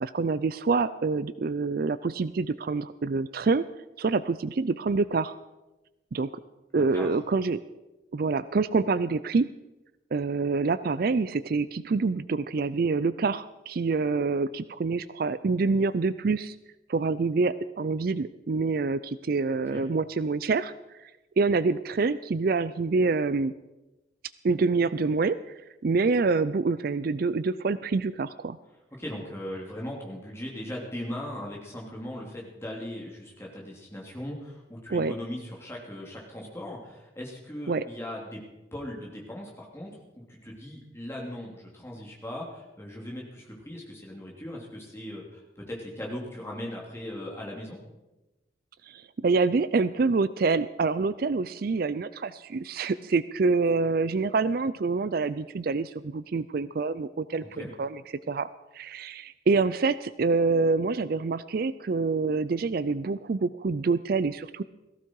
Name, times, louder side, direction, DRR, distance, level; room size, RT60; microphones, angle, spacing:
voice 1, 0.0-3.7 4.0-5.4 6.1-6.4 6.7-7.6 8.1-9.5 10.1-16.6 16.9-20.7 21.4-23.5 24.4-25.5 25.8-28.6 34.9-35.1 37.7-37.8 48.9-58.0 58.3-58.5 58.7-64.6, right 4 dB, 50° right, 15 dB, 0.4 m, -26 dB
voice 2, 6.7-7.1 19.7-19.8 28.9-38.4 38.7-47.8 57.4-57.7, left 1 dB, 15° left, -2 dB, 3.2 m, -39 dB
18.0 x 15.0 x 4.7 m, 1.0 s
head